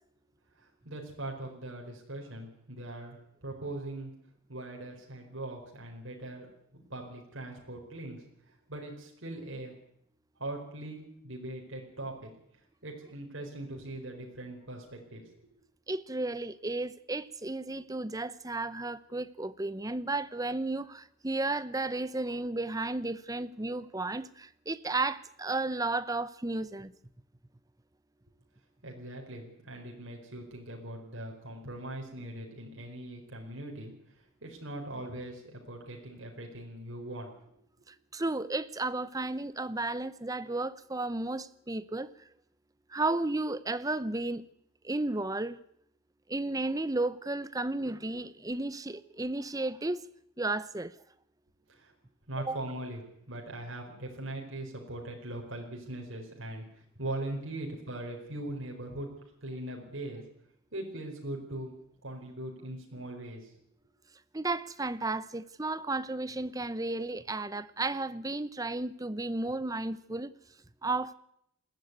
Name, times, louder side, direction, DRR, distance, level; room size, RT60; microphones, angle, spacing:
voice 1, 0.6-4.1 4.5-6.5 6.9-9.7 10.4-12.3 12.8-15.2 28.8-33.9 34.4-37.3 51.7-51.9 52.3-53.0 53.3-56.7 57.0-59.1 59.4-60.2 60.7-61.7 62.0-63.5, right 1 dB, 65° right, 4.7 m, -40 dB
voice 2, 15.9-26.9 37.9-42.1 42.9-44.4 44.8-45.6 46.3-50.0 50.4-51.0 52.5-52.6 64.3-70.3 70.8-71.1, right 2 dB, 15° right, 0.8 m, -33 dB
21.0 x 15.0 x 9.6 m
head